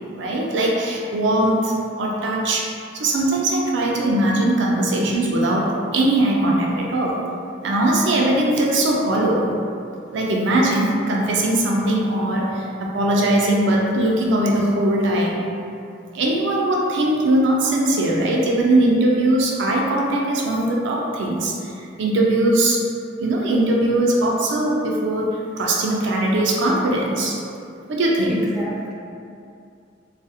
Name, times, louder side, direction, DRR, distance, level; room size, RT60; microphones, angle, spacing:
voice 1, 0.1-2.6 2.9-7.2 7.6-9.5 10.1-15.4 16.1-22.8 23.2-27.4 27.9-28.4, right 1 dB, 65° right, -2 dB, 0.4 m, -20 dB
voice 2, 28.3-29.0, equal, ahead, -8 dB, 0.4 m, -31 dB
2.4 x 2.0 x 2.7 m, 2.5 s
head